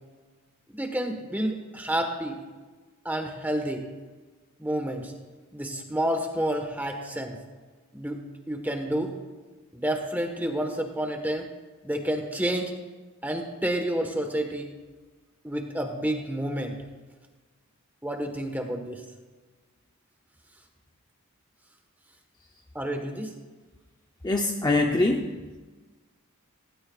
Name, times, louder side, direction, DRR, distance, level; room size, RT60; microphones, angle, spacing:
voice 1, 0.7-2.4 3.0-3.8 4.6-5.1 5.5-7.4 7.9-9.1 9.7-11.5 11.8-12.7 13.2-14.7 15.4-16.8 18.0-19.0 22.7-23.3, right 1 dB, 10° right, 4 dB, 1.2 m, -29 dB
voice 2, 24.2-25.5, left 2 dB, 20° left, 2 dB, 0.6 m, -24 dB
18.5 x 17.0 x 2.4 m, 1.3 s
head